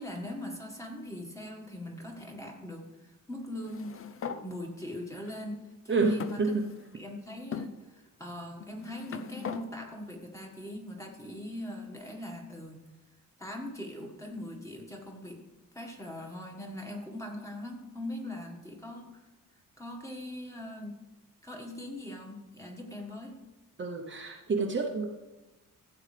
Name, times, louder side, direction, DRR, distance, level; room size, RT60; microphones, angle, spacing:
voice 1, 0.0-4.0 4.4-6.4 6.9-12.8 13.4-15.4 15.7-19.1 19.8-21.0 21.4-23.4, left 1 dB, 10° left, 1 dB, 1.6 m, -41 dB
sound 1, 3.6-4.4 5.3-5.4 6.2-7.0 7.5-7.7 8.6-9.6, left 6 dB, 40° left, 0.6 m, -40 dB
voice 2, 5.9-6.7 23.8-25.1, right 3 dB, 35° right, 1 dB, 0.8 m, -29 dB
15.0 x 8.0 x 3.4 m, 1.1 s
wide cardioid pair, 130°, 35 cm